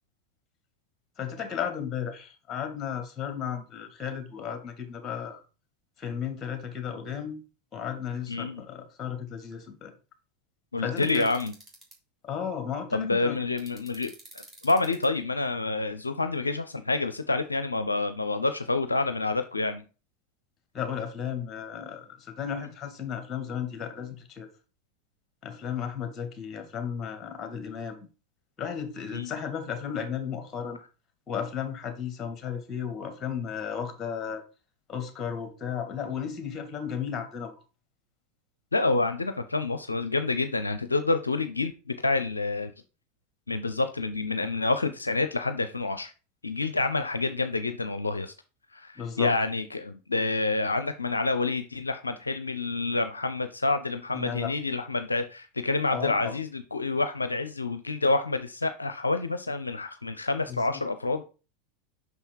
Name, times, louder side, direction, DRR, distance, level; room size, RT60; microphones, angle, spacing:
voice 1, 1.2-5.4 6.0-7.4 7.7-9.9 10.8-11.3 12.2-13.4 20.7-24.5 25.4-28.1 28.6-30.8 31.3-34.4 34.9-37.5 49.0-49.3 54.1-54.5 55.9-56.3 60.7-60.8, left 8 dB, 25° left, 6 dB, 2.2 m, -34 dB
voice 2, 8.3-8.6 10.7-11.5 12.9-19.8 29.1-29.3 38.7-42.7 43.5-46.1 46.4-48.3 48.7-61.2, left 3 dB, 85° left, 9 dB, 0.5 m, -28 dB
sound 1, 11.0-11.9 13.6-15.1, right 1 dB, 15° right, 2.9 m, -49 dB
6.0 x 5.5 x 4.6 m, 0.34 s
figure-of-eight pair, 85°, 0 cm